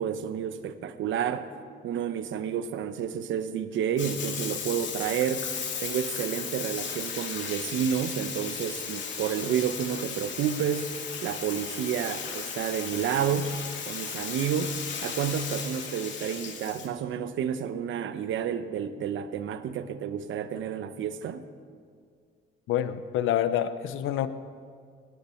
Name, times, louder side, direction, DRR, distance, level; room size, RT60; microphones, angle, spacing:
voice 1, 0.0-1.5 1.8-5.5 5.8-10.9 11.2-13.5 13.9-21.4, right 8 dB, 80° right, 11 dB, 1.0 m, -30 dB
Bathtub (filling or washing), 4.0-16.9, left 6 dB, 65° left, 2.4 m, -36 dB
voice 2, 22.7-24.3, left 11 dB, 90° left, 12 dB, 0.8 m, -27 dB
18.0 x 17.5 x 4.5 m, 2.1 s
cardioid pair, 90°, 20 cm